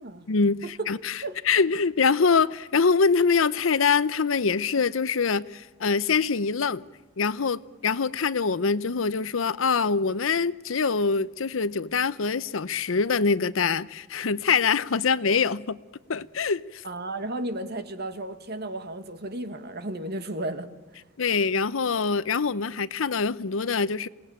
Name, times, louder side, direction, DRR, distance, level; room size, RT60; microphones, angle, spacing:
voice 1, 0.3-6.8 7.2-15.8 16.1-16.8 21.2-24.1, left 5 dB, 75° left, 0.7 m, -24 dB
voice 2, 16.8-20.7, right 2 dB, 55° right, 1.8 m, -33 dB
27.5 x 18.5 x 8.8 m
head